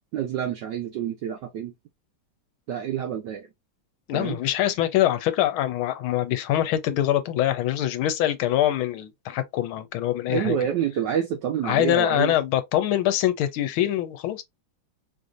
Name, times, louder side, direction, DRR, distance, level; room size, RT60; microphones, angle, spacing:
voice 1, 0.1-1.7 2.7-3.5 4.1-4.4 10.3-12.3, right 9 dB, 70° right, 1.1 m, -28 dB
voice 2, 4.1-10.6 11.6-14.4, left 12 dB, 80° left, 1.4 m, -24 dB
4.7 x 2.6 x 2.5 m
omnidirectional pair, 2.3 m